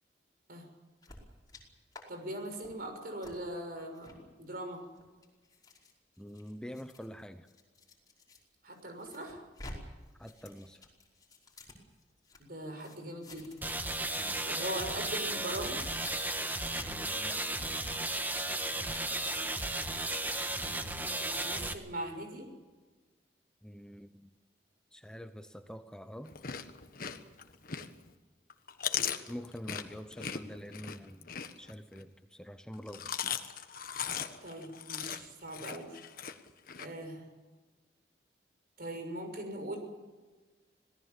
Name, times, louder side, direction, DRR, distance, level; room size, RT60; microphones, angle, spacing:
sound 1, 1.0-1.6 1.9-2.0 2.4-2.7 3.2-3.3 3.9-4.1 4.8-8.4 8.7-9.8 10.0-12.4 12.8-13.7 13.9-14.2 14.5-14.9 15.4-15.6 16.0-16.1 16.7-16.9 17.3-17.4 17.8-17.9 18.3-18.5 18.8-19.6, left 2 dB, 20° left, 5.2 m, -52 dB
voice 1, 2.1-4.8 8.6-9.4 12.4-13.6 14.4-15.8 20.6-22.5 34.4-36.0 36.8-37.3 38.8-39.8, right 1 dB, 55° right, 4 dB, 6.3 m, -41 dB
voice 2, 6.2-7.5 10.2-10.8 14.2-14.4 16.9-17.4 23.6-24.3 24.9-26.3 29.3-31.3 31.6-33.4, equal, 5° left, 8 dB, 0.8 m, -46 dB
sound 2, 13.6-21.7, right 2 dB, 10° right, 1.5 m, -34 dB
Chewing mastication, 26.2-28.1 28.5-32.0 32.7-36.9, left 8 dB, 55° left, 1.5 m, -38 dB
26.5 x 18.0 x 7.4 m, 1.3 s
head